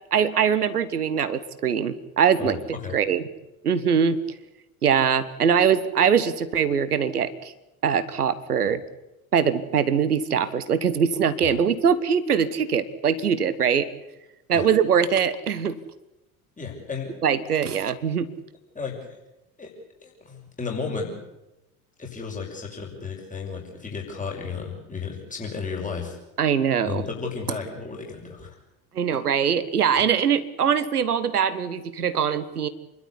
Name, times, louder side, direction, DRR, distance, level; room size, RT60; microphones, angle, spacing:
voice 1, 0.1-2.6 2.9-3.3 3.6-4.2 4.8-7.5 7.8-8.8 9.3-13.9 14.5-15.8 17.2-18.3 26.4-27.1 28.9-32.7, right 7 dB, 85° right, 13 dB, 1.3 m, -22 dB
voice 2, 16.6-17.2 18.7-19.2 19.6-19.7 20.0-21.1 22.0-26.2 26.8-28.5, left 5 dB, 15° left, 0 dB, 6.2 m, -33 dB
28.0 x 12.5 x 9.9 m, 0.95 s
figure-of-eight pair, 70°, 44 cm